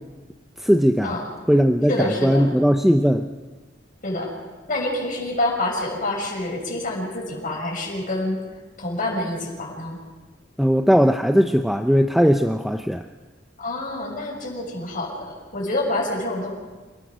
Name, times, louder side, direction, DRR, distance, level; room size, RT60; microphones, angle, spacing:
voice 1, 0.6-1.2 1.5-3.3 10.6-13.0, equal, ahead, 5 dB, 0.6 m, -18 dB
voice 2, 1.9-2.5 4.0-4.3 4.7-8.4 8.8-10.0 13.6-16.5, left 1 dB, 45° left, -1 dB, 6.5 m, -27 dB
29.0 x 18.0 x 6.3 m, 1.3 s
head